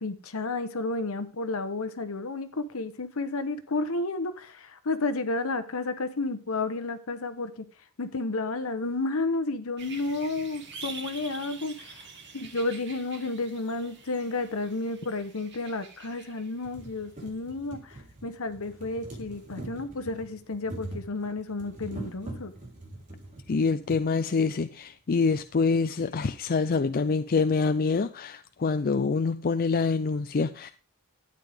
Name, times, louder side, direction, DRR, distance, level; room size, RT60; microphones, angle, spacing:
voice 1, 0.0-7.6 8.0-12.1 12.3-22.5 26.0-26.2, left 3 dB, 65° left, 1.1 m, -32 dB
sound 1, 9.8-17.4 17.7-17.8, right 4 dB, 55° right, 2.1 m, -46 dB
sound 2, 14.5-14.6 15.5-15.6 16.1-16.2 16.5-24.0 25.0-25.1 25.3-25.4, right 1 dB, 35° right, 4.1 m, -43 dB
voice 2, 23.5-30.7, left 4 dB, 40° left, 0.5 m, -26 dB
12.5 x 9.2 x 3.6 m
head